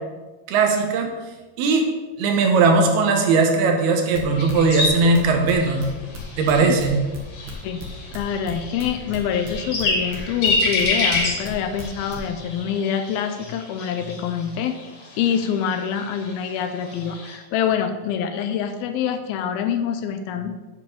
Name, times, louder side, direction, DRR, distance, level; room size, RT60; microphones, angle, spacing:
voice 1, 0.5-1.1 1.6-1.9 2.2-5.8 6.4-7.0, right 4 dB, 75° right, 3 dB, 3.1 m, -18 dB
sound 1, 4.1-9.8 10.1-11.5 11.8-12.2, right 2 dB, 55° right, 1.3 m, -37 dB
sound 2, 4.3-17.4, left 3 dB, 55° left, 3.6 m, -29 dB
voice 2, 7.6-14.9 15.2-20.6, left 8 dB, 80° left, 8 dB, 2.4 m, -26 dB
8.9 x 5.1 x 7.2 m, 1.2 s
omnidirectional pair, 4.6 m